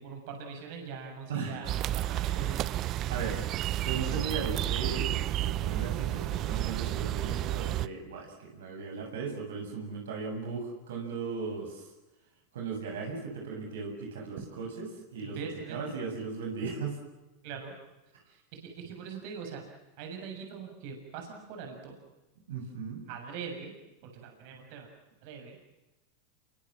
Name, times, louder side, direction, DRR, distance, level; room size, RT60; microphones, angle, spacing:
voice 1, 0.0-3.0 15.2-15.8 17.4-17.7 18.3-22.0 23.1-24.9 25.2-25.6, right 6 dB, 60° right, 3 dB, 7.1 m, -42 dB
sound 1, 1.6-7.9, right 14 dB, 45° right, 0.9 m, -31 dB
voice 2, 3.8-11.9 12.5-15.4 15.7-17.0 22.5-23.0, right 5 dB, 75° right, 1 dB, 7.2 m, -37 dB
29.5 x 23.5 x 7.5 m, 1.0 s
hypercardioid pair, 95°, 0 cm